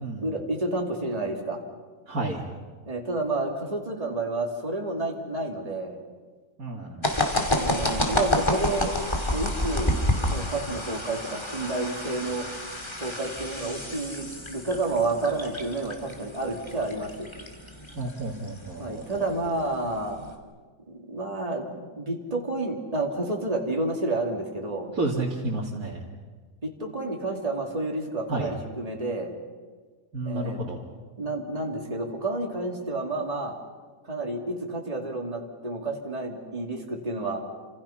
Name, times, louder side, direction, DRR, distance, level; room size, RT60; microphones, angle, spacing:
voice 1, 0.1-1.6 2.9-6.0 7.6-8.9 9.3-12.5 13.0-17.3 18.8-20.2 20.9-24.9 26.6-29.3 30.2-30.6 31.2-33.6 34.1-37.4, right 2 dB, 25° right, 1 dB, 2.8 m, -30 dB
voice 2, 2.1-2.4 6.6-7.0 17.9-19.3 24.9-26.0 28.3-28.5 30.1-30.8, right 2 dB, 75° right, -3 dB, 2.8 m, -31 dB
sound 1, 7.0-20.3, left 1 dB, 20° left, 2.6 m, -30 dB
29.5 x 26.5 x 5.8 m, 1.5 s
omnidirectional pair, 1.5 m